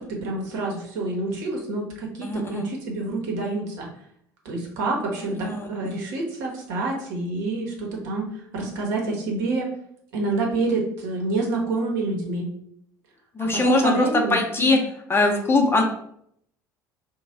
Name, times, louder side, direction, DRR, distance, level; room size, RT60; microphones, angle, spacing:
voice 1, 0.0-3.9 4.4-9.7 10.1-12.5 13.4-14.4, right 2 dB, 65° right, 0 dB, 0.9 m, -27 dB
voice 2, 2.2-2.7 5.4-5.7 13.4-14.8 15.1-15.8, left 2 dB, 20° left, 2 dB, 0.7 m, -21 dB
3.1 x 2.2 x 4.0 m, 0.68 s
figure-of-eight pair, 65°, 11 cm